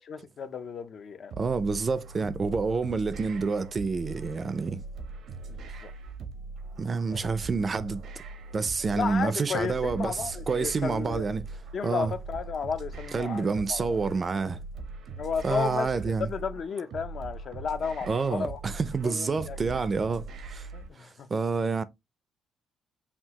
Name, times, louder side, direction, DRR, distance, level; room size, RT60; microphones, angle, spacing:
voice 1, 0.0-1.4 5.5-5.9 7.0-7.3 8.9-11.3 11.7-14.0 15.2-15.9 16.2-18.6 19.0-19.6 20.7-21.3, left 6 dB, 55° left, 0.5 m, -33 dB
sound 1, 1.3-20.9, right 3 dB, 75° right, 0.7 m, -41 dB
voice 2, 1.4-4.8 6.8-8.0 8.5-11.4 11.8-12.1 13.1-14.6 15.4-16.3 18.1-20.2 20.5-20.7 21.0-21.8, right 4 dB, 35° right, 0.4 m, -28 dB
5.7 x 2.4 x 2.8 m
cardioid pair, 90°, 0 cm